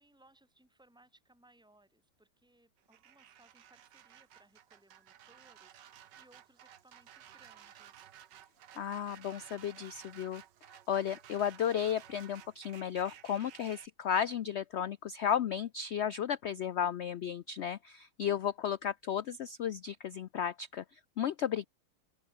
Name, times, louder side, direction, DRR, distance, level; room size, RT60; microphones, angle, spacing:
voice 1, 0.0-8.1, right 1 dB, ahead, 4.7 m, -66 dB
sound 1, 2.8-13.9, right 10 dB, 85° right, 1.7 m, -55 dB
voice 2, 8.8-10.4 10.9-21.7, left 8 dB, 90° left, 0.5 m, -34 dB
open air
omnidirectional pair, 1.8 m